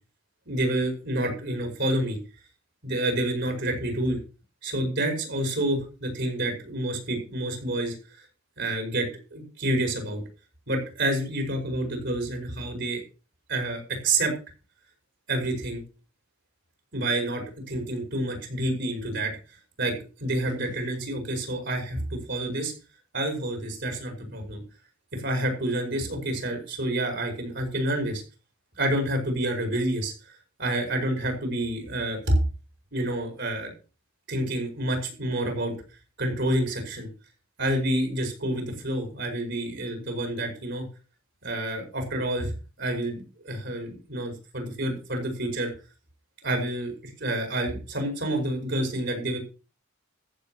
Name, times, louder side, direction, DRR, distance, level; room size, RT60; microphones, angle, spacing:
voice 1, 0.5-2.2 2.8-4.2 4.6-8.2 8.6-10.2 10.7-13.0 13.5-14.3 15.3-15.8 16.9-19.3 19.8-22.7 23.1-24.6 25.1-28.2 28.8-30.1 30.6-32.4 32.9-33.7 34.3-35.7 36.2-37.1 37.6-40.9 41.4-42.5 42.8-45.7 46.4-49.4, right 1 dB, 55° right, 4 dB, 5.5 m, -28 dB
14.5 x 7.5 x 6.4 m, 0.34 s
head